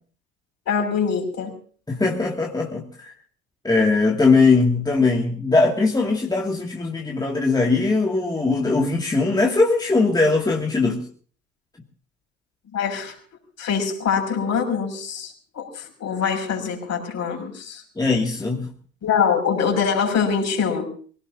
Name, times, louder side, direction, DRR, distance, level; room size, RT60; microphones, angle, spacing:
voice 1, 0.7-1.5 12.7-13.1 13.6-17.8 19.0-20.9, left 6 dB, 45° left, 3 dB, 6.0 m, -24 dB
voice 2, 1.9-3.1 3.6-11.0 18.0-18.7, left 3 dB, 10° left, 0 dB, 2.4 m, -20 dB
25.0 x 17.5 x 2.8 m, 0.43 s
figure-of-eight pair, 65°, 39 cm